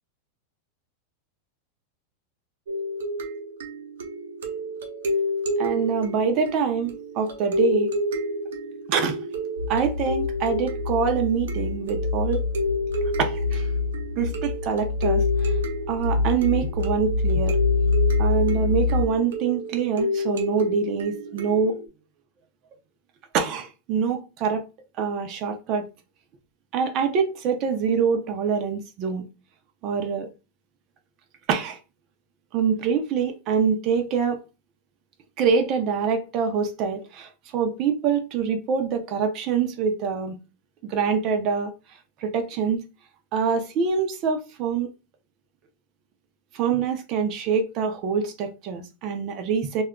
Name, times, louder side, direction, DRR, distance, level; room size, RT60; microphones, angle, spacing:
sound 1, 2.7-21.9, equal, 90° right, 0.7 m, -30 dB
voice 1, 5.6-7.9 8.9-9.2 9.7-12.5 13.2-13.7 14.2-15.5 15.9-17.6 18.2-21.8 23.3-24.6 25.0-25.8 26.7-29.2 29.8-30.3 31.5-31.8 32.5-34.4 35.4-40.4 40.8-41.7 42.2-42.8 43.3-44.9 46.5-49.8, right 6 dB, 40° right, 0.5 m, -25 dB
sound 2, 9.6-19.0, left 4 dB, 85° left, 0.8 m, -26 dB
2.3 x 2.1 x 3.5 m
supercardioid pair, 135°, 0 cm